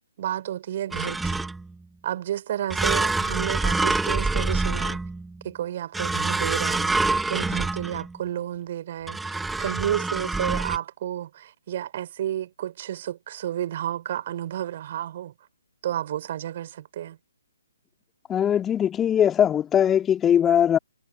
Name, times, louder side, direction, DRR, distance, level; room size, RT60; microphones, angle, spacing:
voice 1, 0.2-1.4 2.0-5.0 5.4-6.9 7.3-15.3 15.8-17.2, right 11 dB, 40° right, 5.3 m, -31 dB
sound 1, 0.9-1.7 2.7-5.4 5.9-8.2 9.1-10.8, right 3 dB, 5° right, 1.2 m, -26 dB
voice 2, 18.3-20.8, left 9 dB, 10° left, 2.4 m, -20 dB
figure-of-eight pair, 135°, 0 cm